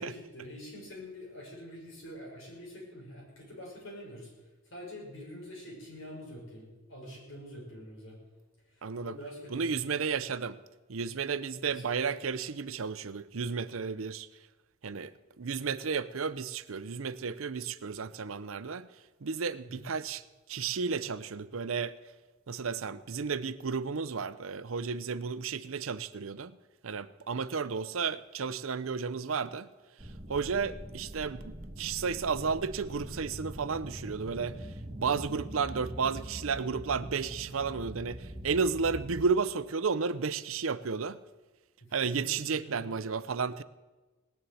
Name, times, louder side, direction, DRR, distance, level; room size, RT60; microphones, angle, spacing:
voice 1, 0.0-4.3 4.7-8.2 8.7-9.8 11.6-11.8 19.6-19.8 42.1-42.9, equal, 70° left, -2 dB, 6.1 m, -46 dB
voice 2, 8.8-9.2 9.5-10.6 10.9-14.3 14.8-18.9 19.2-20.2 20.5-22.0 22.5-26.6 26.8-29.7 30.0-41.2 41.9-43.6, right 5 dB, 80° right, 15 dB, 0.7 m, -33 dB
sound 1, 30.0-39.2, right 1 dB, 25° right, 1.5 m, -43 dB
18.5 x 7.2 x 9.3 m, 1.2 s
head